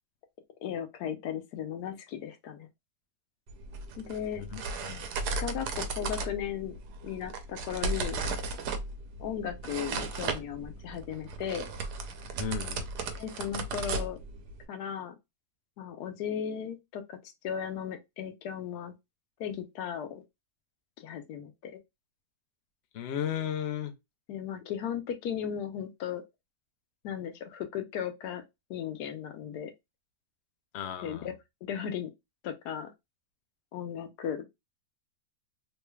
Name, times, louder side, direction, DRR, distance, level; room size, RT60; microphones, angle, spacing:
voice 1, 0.6-2.7 4.0-4.4 5.3-6.8 7.0-8.2 9.2-11.7 13.1-14.2 14.7-15.2 15.8-18.9 19.4-20.2 21.0-21.8 24.3-26.2 27.0-28.4 28.7-29.7 31.0-31.3 31.6-32.1 32.4-32.9 33.7-34.4, left 9 dB, 85° left, 1.2 m, -36 dB
sound 1, 3.5-14.7, right 3 dB, 85° right, 1.2 m, -36 dB
voice 2, 4.4-5.0 12.4-12.9 22.9-23.9 30.7-31.3, left 9 dB, 65° left, 0.6 m, -35 dB
3.2 x 3.1 x 2.2 m
omnidirectional pair, 1.6 m